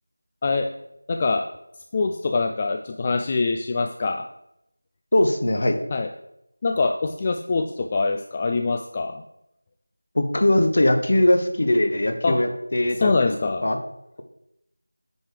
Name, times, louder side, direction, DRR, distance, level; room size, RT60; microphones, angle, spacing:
voice 1, 1.1-1.5 1.9-4.2 5.9-6.1 6.6-9.2 12.2-12.4 13.0-13.6, left 3 dB, 20° left, 5 dB, 0.3 m, -24 dB
voice 2, 5.1-5.8 10.1-13.3 13.6-13.8, left 1 dB, 45° left, 6 dB, 1.1 m, -20 dB
9.2 x 4.8 x 4.8 m, 0.83 s
figure-of-eight pair, 175°, 0 cm